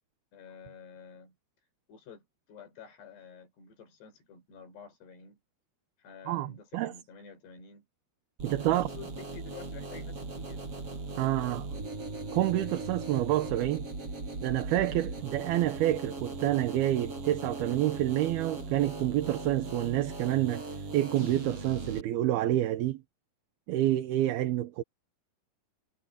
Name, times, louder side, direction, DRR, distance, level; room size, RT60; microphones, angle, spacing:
voice 1, 0.3-1.4 1.9-5.4 6.0-7.9 8.6-10.6, left 6 dB, 70° left, 7.0 m, -50 dB
voice 2, 6.3-6.9 8.4-8.9 11.2-11.7 12.3-13.9 14.4-20.6 20.9-23.0 23.7-24.8, right 14 dB, 70° right, 2.8 m, -28 dB
sound 1, 8.4-22.0, right 3 dB, 30° right, 7.9 m, -39 dB
omnidirectional pair, 5.0 m